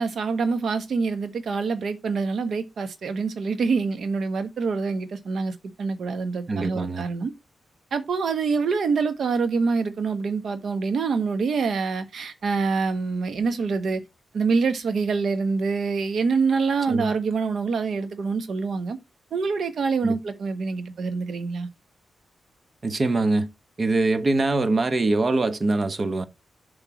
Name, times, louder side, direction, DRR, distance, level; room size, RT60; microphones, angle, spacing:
voice 1, 0.0-7.3 7.9-14.0 14.3-19.0 19.3-21.7, right 4 dB, 70° right, 1.3 m, -25 dB
voice 2, 6.5-7.1 16.9-17.1 20.0-20.2 22.8-23.5 23.8-26.2, right 2 dB, 40° right, 1.1 m, -23 dB
7.1 x 3.6 x 6.0 m
cardioid pair, 70°, 0 cm